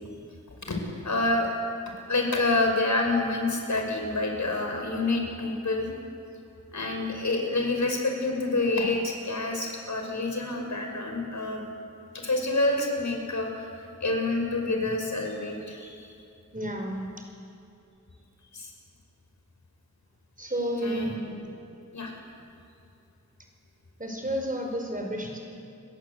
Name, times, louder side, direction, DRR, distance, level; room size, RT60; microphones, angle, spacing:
voice 1, 1.0-1.5 2.1-5.9 6.7-11.6 12.1-13.7 14.0-16.1 18.5-18.7 20.8-21.3 21.9-22.1, left 2 dB, 70° left, 2 dB, 6.2 m, -27 dB
voice 2, 16.5-17.1 20.4-21.4 24.0-25.4, equal, 25° right, 2 dB, 5.5 m, -31 dB
29.5 x 21.5 x 8.5 m, 2.7 s
wide cardioid pair, 100°, 30 cm